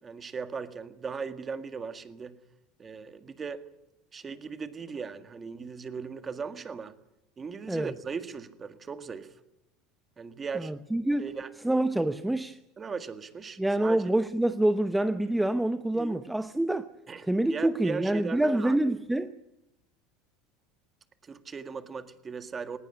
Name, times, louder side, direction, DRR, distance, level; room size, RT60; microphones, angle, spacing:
voice 1, 0.0-2.4 2.8-3.6 4.1-6.9 7.4-9.3 10.2-10.7 11.2-11.5 12.8-14.1 15.9-16.2 17.1-18.8 21.2-22.8, right 5 dB, 25° right, 1.8 m, -38 dB
voice 2, 10.5-11.3 11.6-12.6 13.6-16.9 17.2-19.3, right 1 dB, 5° right, 0.8 m, -26 dB
19.0 x 18.5 x 9.9 m
supercardioid pair, 125°, 0 cm